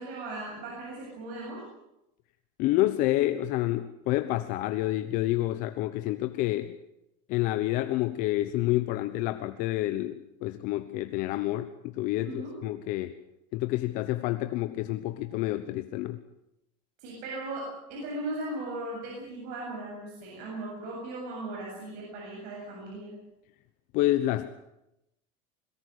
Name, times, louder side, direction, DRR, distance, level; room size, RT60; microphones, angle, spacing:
voice 1, 0.0-1.6 12.2-12.5 17.0-17.6 17.9-23.1, right 2 dB, 60° right, -2 dB, 7.9 m, -37 dB
voice 2, 2.6-6.8 7.3-13.1 13.5-16.2 23.9-24.5, left 16 dB, 55° left, 10 dB, 1.0 m, -28 dB
22.0 x 19.0 x 8.2 m, 0.87 s
cardioid pair, 150°, 17 cm